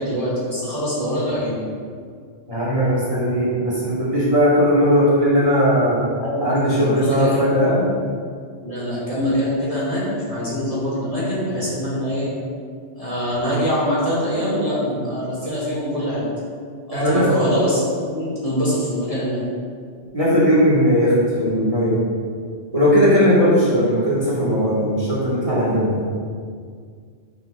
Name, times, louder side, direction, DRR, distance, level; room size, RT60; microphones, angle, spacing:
voice 1, 0.0-1.6 6.2-7.9 8.6-12.3 13.0-16.2 16.9-19.4, equal, 30° left, -9 dB, 2.2 m, -24 dB
voice 2, 2.5-6.0 6.4-7.7 16.9-17.3 20.1-22.0 22.7-26.0, equal, 30° right, -8 dB, 1.9 m, -18 dB
10.5 x 5.8 x 2.6 m, 2.1 s
omnidirectional pair, 1.2 m